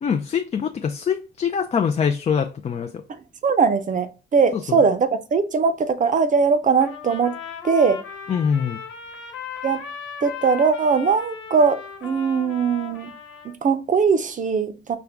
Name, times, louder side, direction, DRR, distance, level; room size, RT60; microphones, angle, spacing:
voice 1, 0.0-3.0 4.5-4.8 8.3-8.8, left 7 dB, 35° left, 0.4 m, -24 dB
voice 2, 3.4-7.4 7.6-8.0 9.6-9.8 10.2-13.1 13.4-15.0, right 5 dB, 40° right, 0.6 m, -20 dB
Trumpet, 6.8-13.5, left 6 dB, 85° left, 1.2 m, -37 dB
5.1 x 2.3 x 3.4 m
cardioid pair, 90°, 20 cm